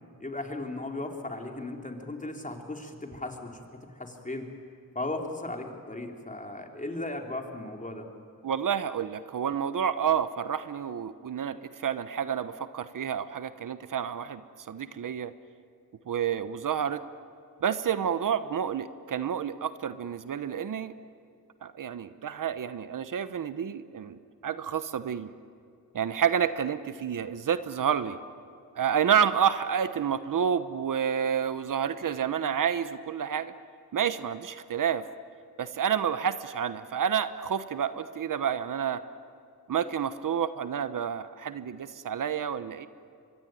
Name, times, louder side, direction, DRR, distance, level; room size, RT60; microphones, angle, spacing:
voice 1, 0.2-4.5 4.9-8.1, left 2 dB, 20° left, 3 dB, 3.7 m, -36 dB
voice 2, 8.4-14.4 14.7-15.3 16.1-17.0 17.6-20.9 21.6-25.3 25.9-28.2 28.8-33.5 33.9-35.1 35.6-39.0 39.7-42.9, right 8 dB, 65° right, 13 dB, 1.0 m, -29 dB
24.0 x 23.0 x 9.2 m, 2.4 s
cardioid pair, 70°, 34 cm